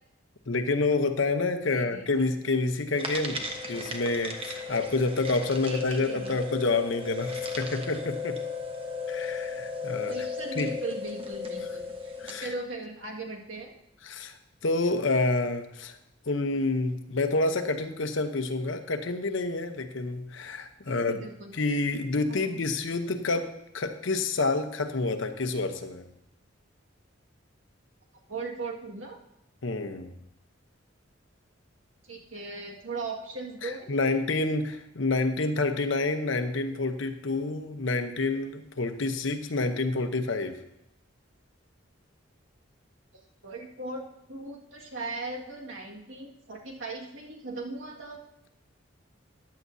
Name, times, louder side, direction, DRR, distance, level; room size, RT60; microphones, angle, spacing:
voice 1, 0.5-8.4 9.1-10.1 10.5-10.8 12.2-12.5 14.0-14.4 14.6-16.0 16.3-21.2 21.6-26.1 29.6-30.1 33.6-40.6, left 3 dB, 70° left, 7 dB, 0.9 m, -28 dB
voice 2, 1.7-2.0 5.6-6.4 10.1-13.7 20.9-21.5 22.3-22.5 28.3-29.2 32.0-34.2 43.4-48.2, right 3 dB, 75° right, 0 dB, 1.9 m, -38 dB
sound 1, 3.0-12.5, left 4 dB, 30° right, 1.0 m, -35 dB
14.5 x 10.5 x 2.7 m, 0.87 s
head